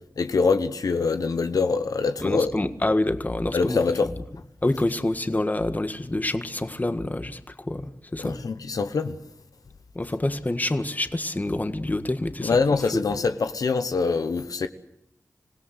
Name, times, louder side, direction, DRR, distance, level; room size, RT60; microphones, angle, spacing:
voice 1, 0.2-2.5 3.5-4.1 8.2-9.2 12.4-14.7, left 4 dB, 85° left, 1.1 m, -24 dB
voice 2, 2.2-4.1 4.6-8.4 10.0-12.6 12.9-13.0, left 1 dB, 25° left, 1.7 m, -27 dB
26.5 x 17.0 x 8.1 m
wide cardioid pair, 55°, 6 cm